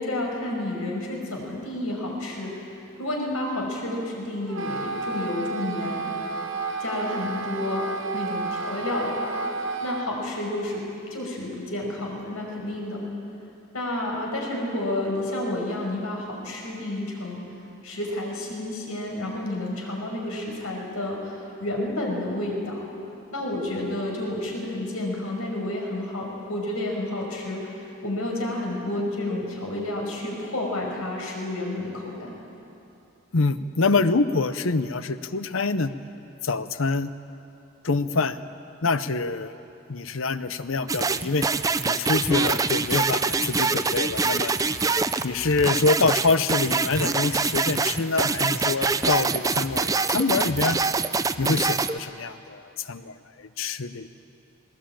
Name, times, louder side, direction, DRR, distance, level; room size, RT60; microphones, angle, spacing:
voice 1, 0.0-2.5 3.0-6.0 6.8-7.9 8.1-9.3 9.8-13.0 13.7-17.4 17.8-22.9 23.3-32.3, left 1 dB, 85° left, -1 dB, 5.7 m, -30 dB
Wind instrument woodwind instrument, 4.5-10.1, right 3 dB, 70° right, 1.4 m, -31 dB
voice 2, 33.3-35.9 36.4-37.1 37.8-38.4 38.8-39.6 39.9-41.5 41.8-44.5 45.2-50.8 51.4-54.1, left 3 dB, 70° left, 13 dB, 0.8 m, -25 dB
sound 1, 40.9-52.0, right 4 dB, 15° right, 0.4 m, -25 dB
20.0 x 19.5 x 8.9 m, 2.8 s
head